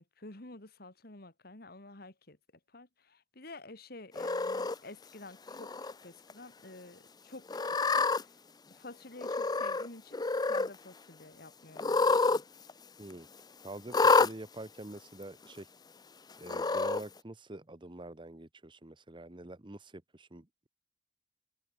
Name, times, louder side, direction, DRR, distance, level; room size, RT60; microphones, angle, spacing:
voice 1, 0.0-2.4 2.7-8.3 8.7-12.7, left 2 dB, 60° left, 2.9 m, -50 dB
Cat, 4.2-4.8 5.5-5.9 6.3-6.4 7.5-8.2 9.2-9.9 10.1-10.7 11.8-12.4 12.7-12.8 13.9-14.3 15.2-15.3 16.4-17.0, left 4 dB, 25° left, 0.6 m, -28 dB
voice 2, 13.6-15.7 16.4-20.5, right 2 dB, 30° right, 1.1 m, -46 dB
open air
head